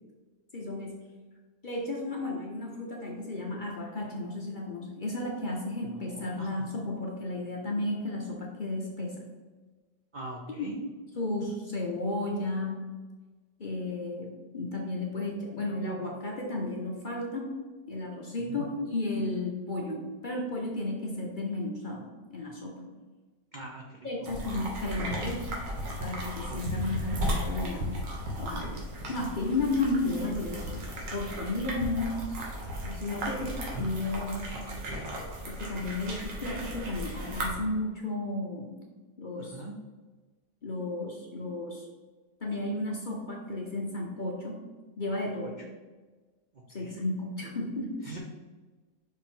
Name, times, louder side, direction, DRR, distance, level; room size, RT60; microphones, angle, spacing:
voice 1, 0.5-1.0 1.6-9.2 10.5-10.7 11.1-12.8 13.6-17.5 17.9-22.9 24.0-25.5 26.0-27.9 28.4-28.7 29.1-32.2 32.8-34.5 35.5-38.8 39.2-39.6 40.6-41.9 42.4-44.6 45.0-45.6 46.7-48.0, left 2 dB, 40° left, -1 dB, 0.7 m, -33 dB
voice 2, 6.1-6.5 10.1-10.7 18.5-18.6 23.5-24.3 26.5-26.9 39.4-39.7 46.8-47.0 48.0-48.2, right 2 dB, 55° right, -1 dB, 0.5 m, -42 dB
sound 1, 24.3-37.5, equal, 80° right, 1.9 m, -35 dB
5.6 x 4.7 x 3.8 m, 1.3 s
omnidirectional pair, 1.9 m